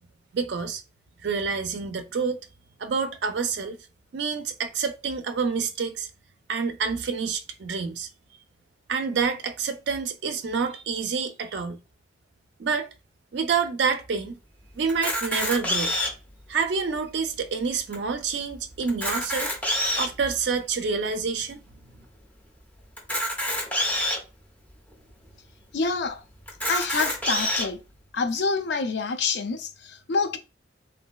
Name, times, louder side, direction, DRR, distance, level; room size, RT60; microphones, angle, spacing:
voice 1, 0.3-0.8 1.2-2.4 2.8-3.8 4.1-6.1 6.5-8.1 8.9-11.8 12.6-12.9 13.3-14.4 14.8-16.0 16.5-19.5 20.0-21.6, right 5 dB, 75° right, 0.4 m, -27 dB
Camera, 14.9-16.3 16.9-17.0 17.2-17.4 17.9-18.0 18.8-20.2 20.8-20.9 23.0-24.2 24.9-25.0 25.3-25.4 26.5-27.7, left 1 dB, 10° left, 0.7 m, -27 dB
voice 2, 25.7-26.2 26.7-27.8 28.1-30.4, left 4 dB, 75° left, 0.5 m, -27 dB
3.0 x 2.6 x 2.3 m
head